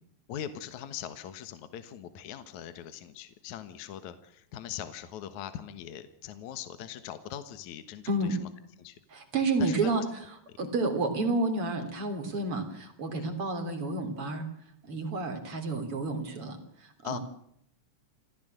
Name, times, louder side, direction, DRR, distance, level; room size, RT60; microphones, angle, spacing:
voice 1, 0.3-8.5 8.8-9.0 9.6-10.1 10.5-10.6 13.2-13.4 17.0-17.2, left 10 dB, 70° left, 11 dB, 2.7 m, -41 dB
voice 2, 8.1-8.4 9.1-10.0 10.6-14.5 14.8-17.2, right 3 dB, 45° right, 8 dB, 4.1 m, -30 dB
28.0 x 15.0 x 8.0 m, 0.72 s
omnidirectional pair, 3.7 m